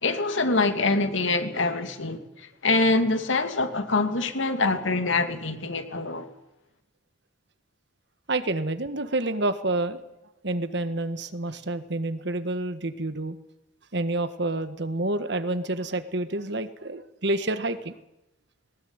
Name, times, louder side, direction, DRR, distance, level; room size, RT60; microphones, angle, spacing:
voice 1, 0.0-6.3, left 3 dB, 75° left, 2.5 m, -25 dB
voice 2, 8.3-10.0 10.4-13.4 13.9-17.9, right 2 dB, 60° right, 1.6 m, -28 dB
20.0 x 19.5 x 9.7 m
head